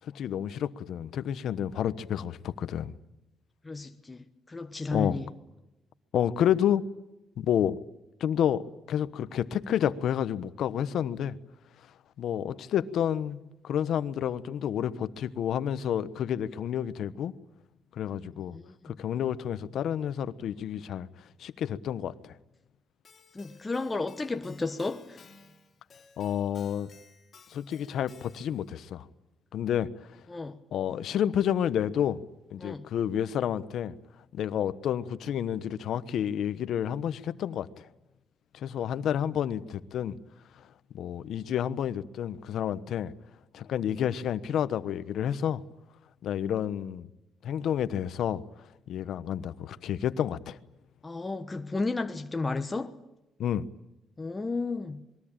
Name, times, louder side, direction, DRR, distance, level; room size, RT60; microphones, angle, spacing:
voice 1, 0.0-2.9 4.9-5.2 6.1-6.8 7.4-7.7 8.2-11.4 12.2-17.3 18.0-18.6 18.8-21.1 21.4-22.4 26.2-26.9 27.5-29.1 29.5-30.2 30.7-32.2 32.5-33.9 34.3-37.9 38.5-40.2 40.6-40.7 40.9-43.1 43.5-45.6 46.2-47.1 47.4-48.4 48.9-50.6 53.4-53.7, left 9 dB, 75° left, 1.1 m, -30 dB
voice 2, 3.6-5.2 18.5-19.0 23.3-25.2 30.3-30.6 32.6-32.9 51.0-53.0 54.2-55.0, left 3 dB, 20° left, 1.3 m, -33 dB
Keyboard (musical), 23.1-28.7, left 5 dB, 45° left, 3.7 m, -56 dB
28.0 x 21.5 x 8.9 m
cardioid pair, 90°, 0 cm